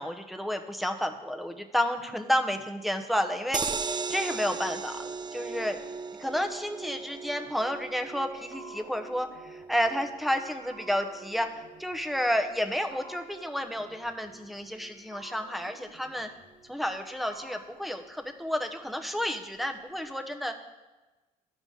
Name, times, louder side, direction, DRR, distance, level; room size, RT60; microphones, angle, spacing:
voice 1, 0.0-5.8 6.2-16.3 16.7-20.7, equal, ahead, 6 dB, 0.9 m, -31 dB
sound 1, 3.5-15.8 16.1-16.2 16.5-16.6, right 5 dB, 25° right, 0.5 m, -39 dB
sound 2, 8.3-12.3 12.6-14.6 14.8-16.8 17.0-17.6, right 1 dB, 85° right, 1.7 m, -51 dB
13.0 x 4.9 x 3.9 m, 1.2 s
supercardioid pair, 75°, 17 cm